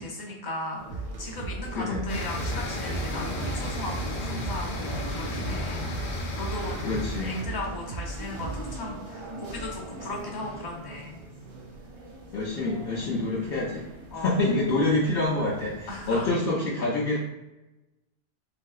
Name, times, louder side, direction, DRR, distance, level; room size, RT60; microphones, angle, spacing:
voice 1, 0.0-6.8 7.2-11.2 14.1-14.3 15.9-16.3, left 2 dB, 25° left, -2 dB, 0.6 m, -37 dB
sound 1, 0.7-16.3, right 1 dB, 90° right, 1.1 m, -42 dB
sound 2, 0.9-8.8, right 2 dB, 50° right, 0.5 m, -36 dB
voice 2, 1.7-2.1 6.8-7.3 12.3-13.9 14.1-17.2, left 2 dB, 65° left, -3 dB, 0.7 m, -27 dB
sound 3, 2.1-7.4, left 1 dB, 90° left, 0.9 m, -34 dB
3.3 x 2.7 x 2.3 m, 1.0 s
omnidirectional pair, 1.1 m